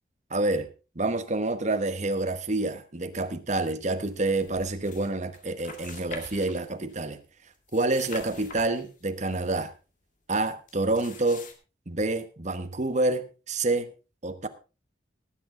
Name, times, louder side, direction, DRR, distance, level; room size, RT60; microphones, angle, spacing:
voice 1, 0.3-0.7 0.9-7.2 7.7-9.7 10.3-11.4 11.9-13.9 14.2-14.5, right 2 dB, 40° right, 1.2 m, -28 dB
sound 1, 4.1-5.1 5.3-7.1 7.5-9.6 10.7-11.5, left 4 dB, 45° left, 2.1 m, -45 dB
18.5 x 8.1 x 3.7 m
head